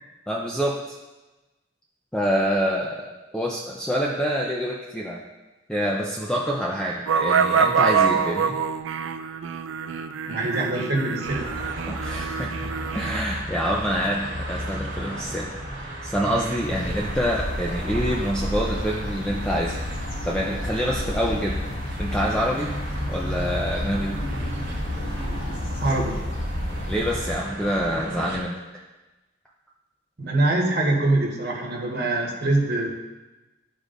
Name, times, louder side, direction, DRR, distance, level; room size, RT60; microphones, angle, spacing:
voice 1, 0.3-0.9 2.1-5.2 5.7-8.6 11.9-21.6 22.0-22.7 23.1-24.1 26.9-28.6, equal, 5° left, -4 dB, 0.5 m, -27 dB
sound 1, 7.1-13.2, right 6 dB, 90° right, 0.4 m, -25 dB
voice 2, 10.3-11.7 25.8-26.2 30.2-32.9, right 2 dB, 55° right, -1 dB, 1.4 m, -24 dB
sound 2, 11.2-28.4, right 1 dB, 75° right, 1.6 m, -35 dB
sound 3, 16.6-27.3, left 1 dB, 80° left, 1.7 m, -30 dB
12.5 x 4.9 x 2.6 m, 1.1 s
head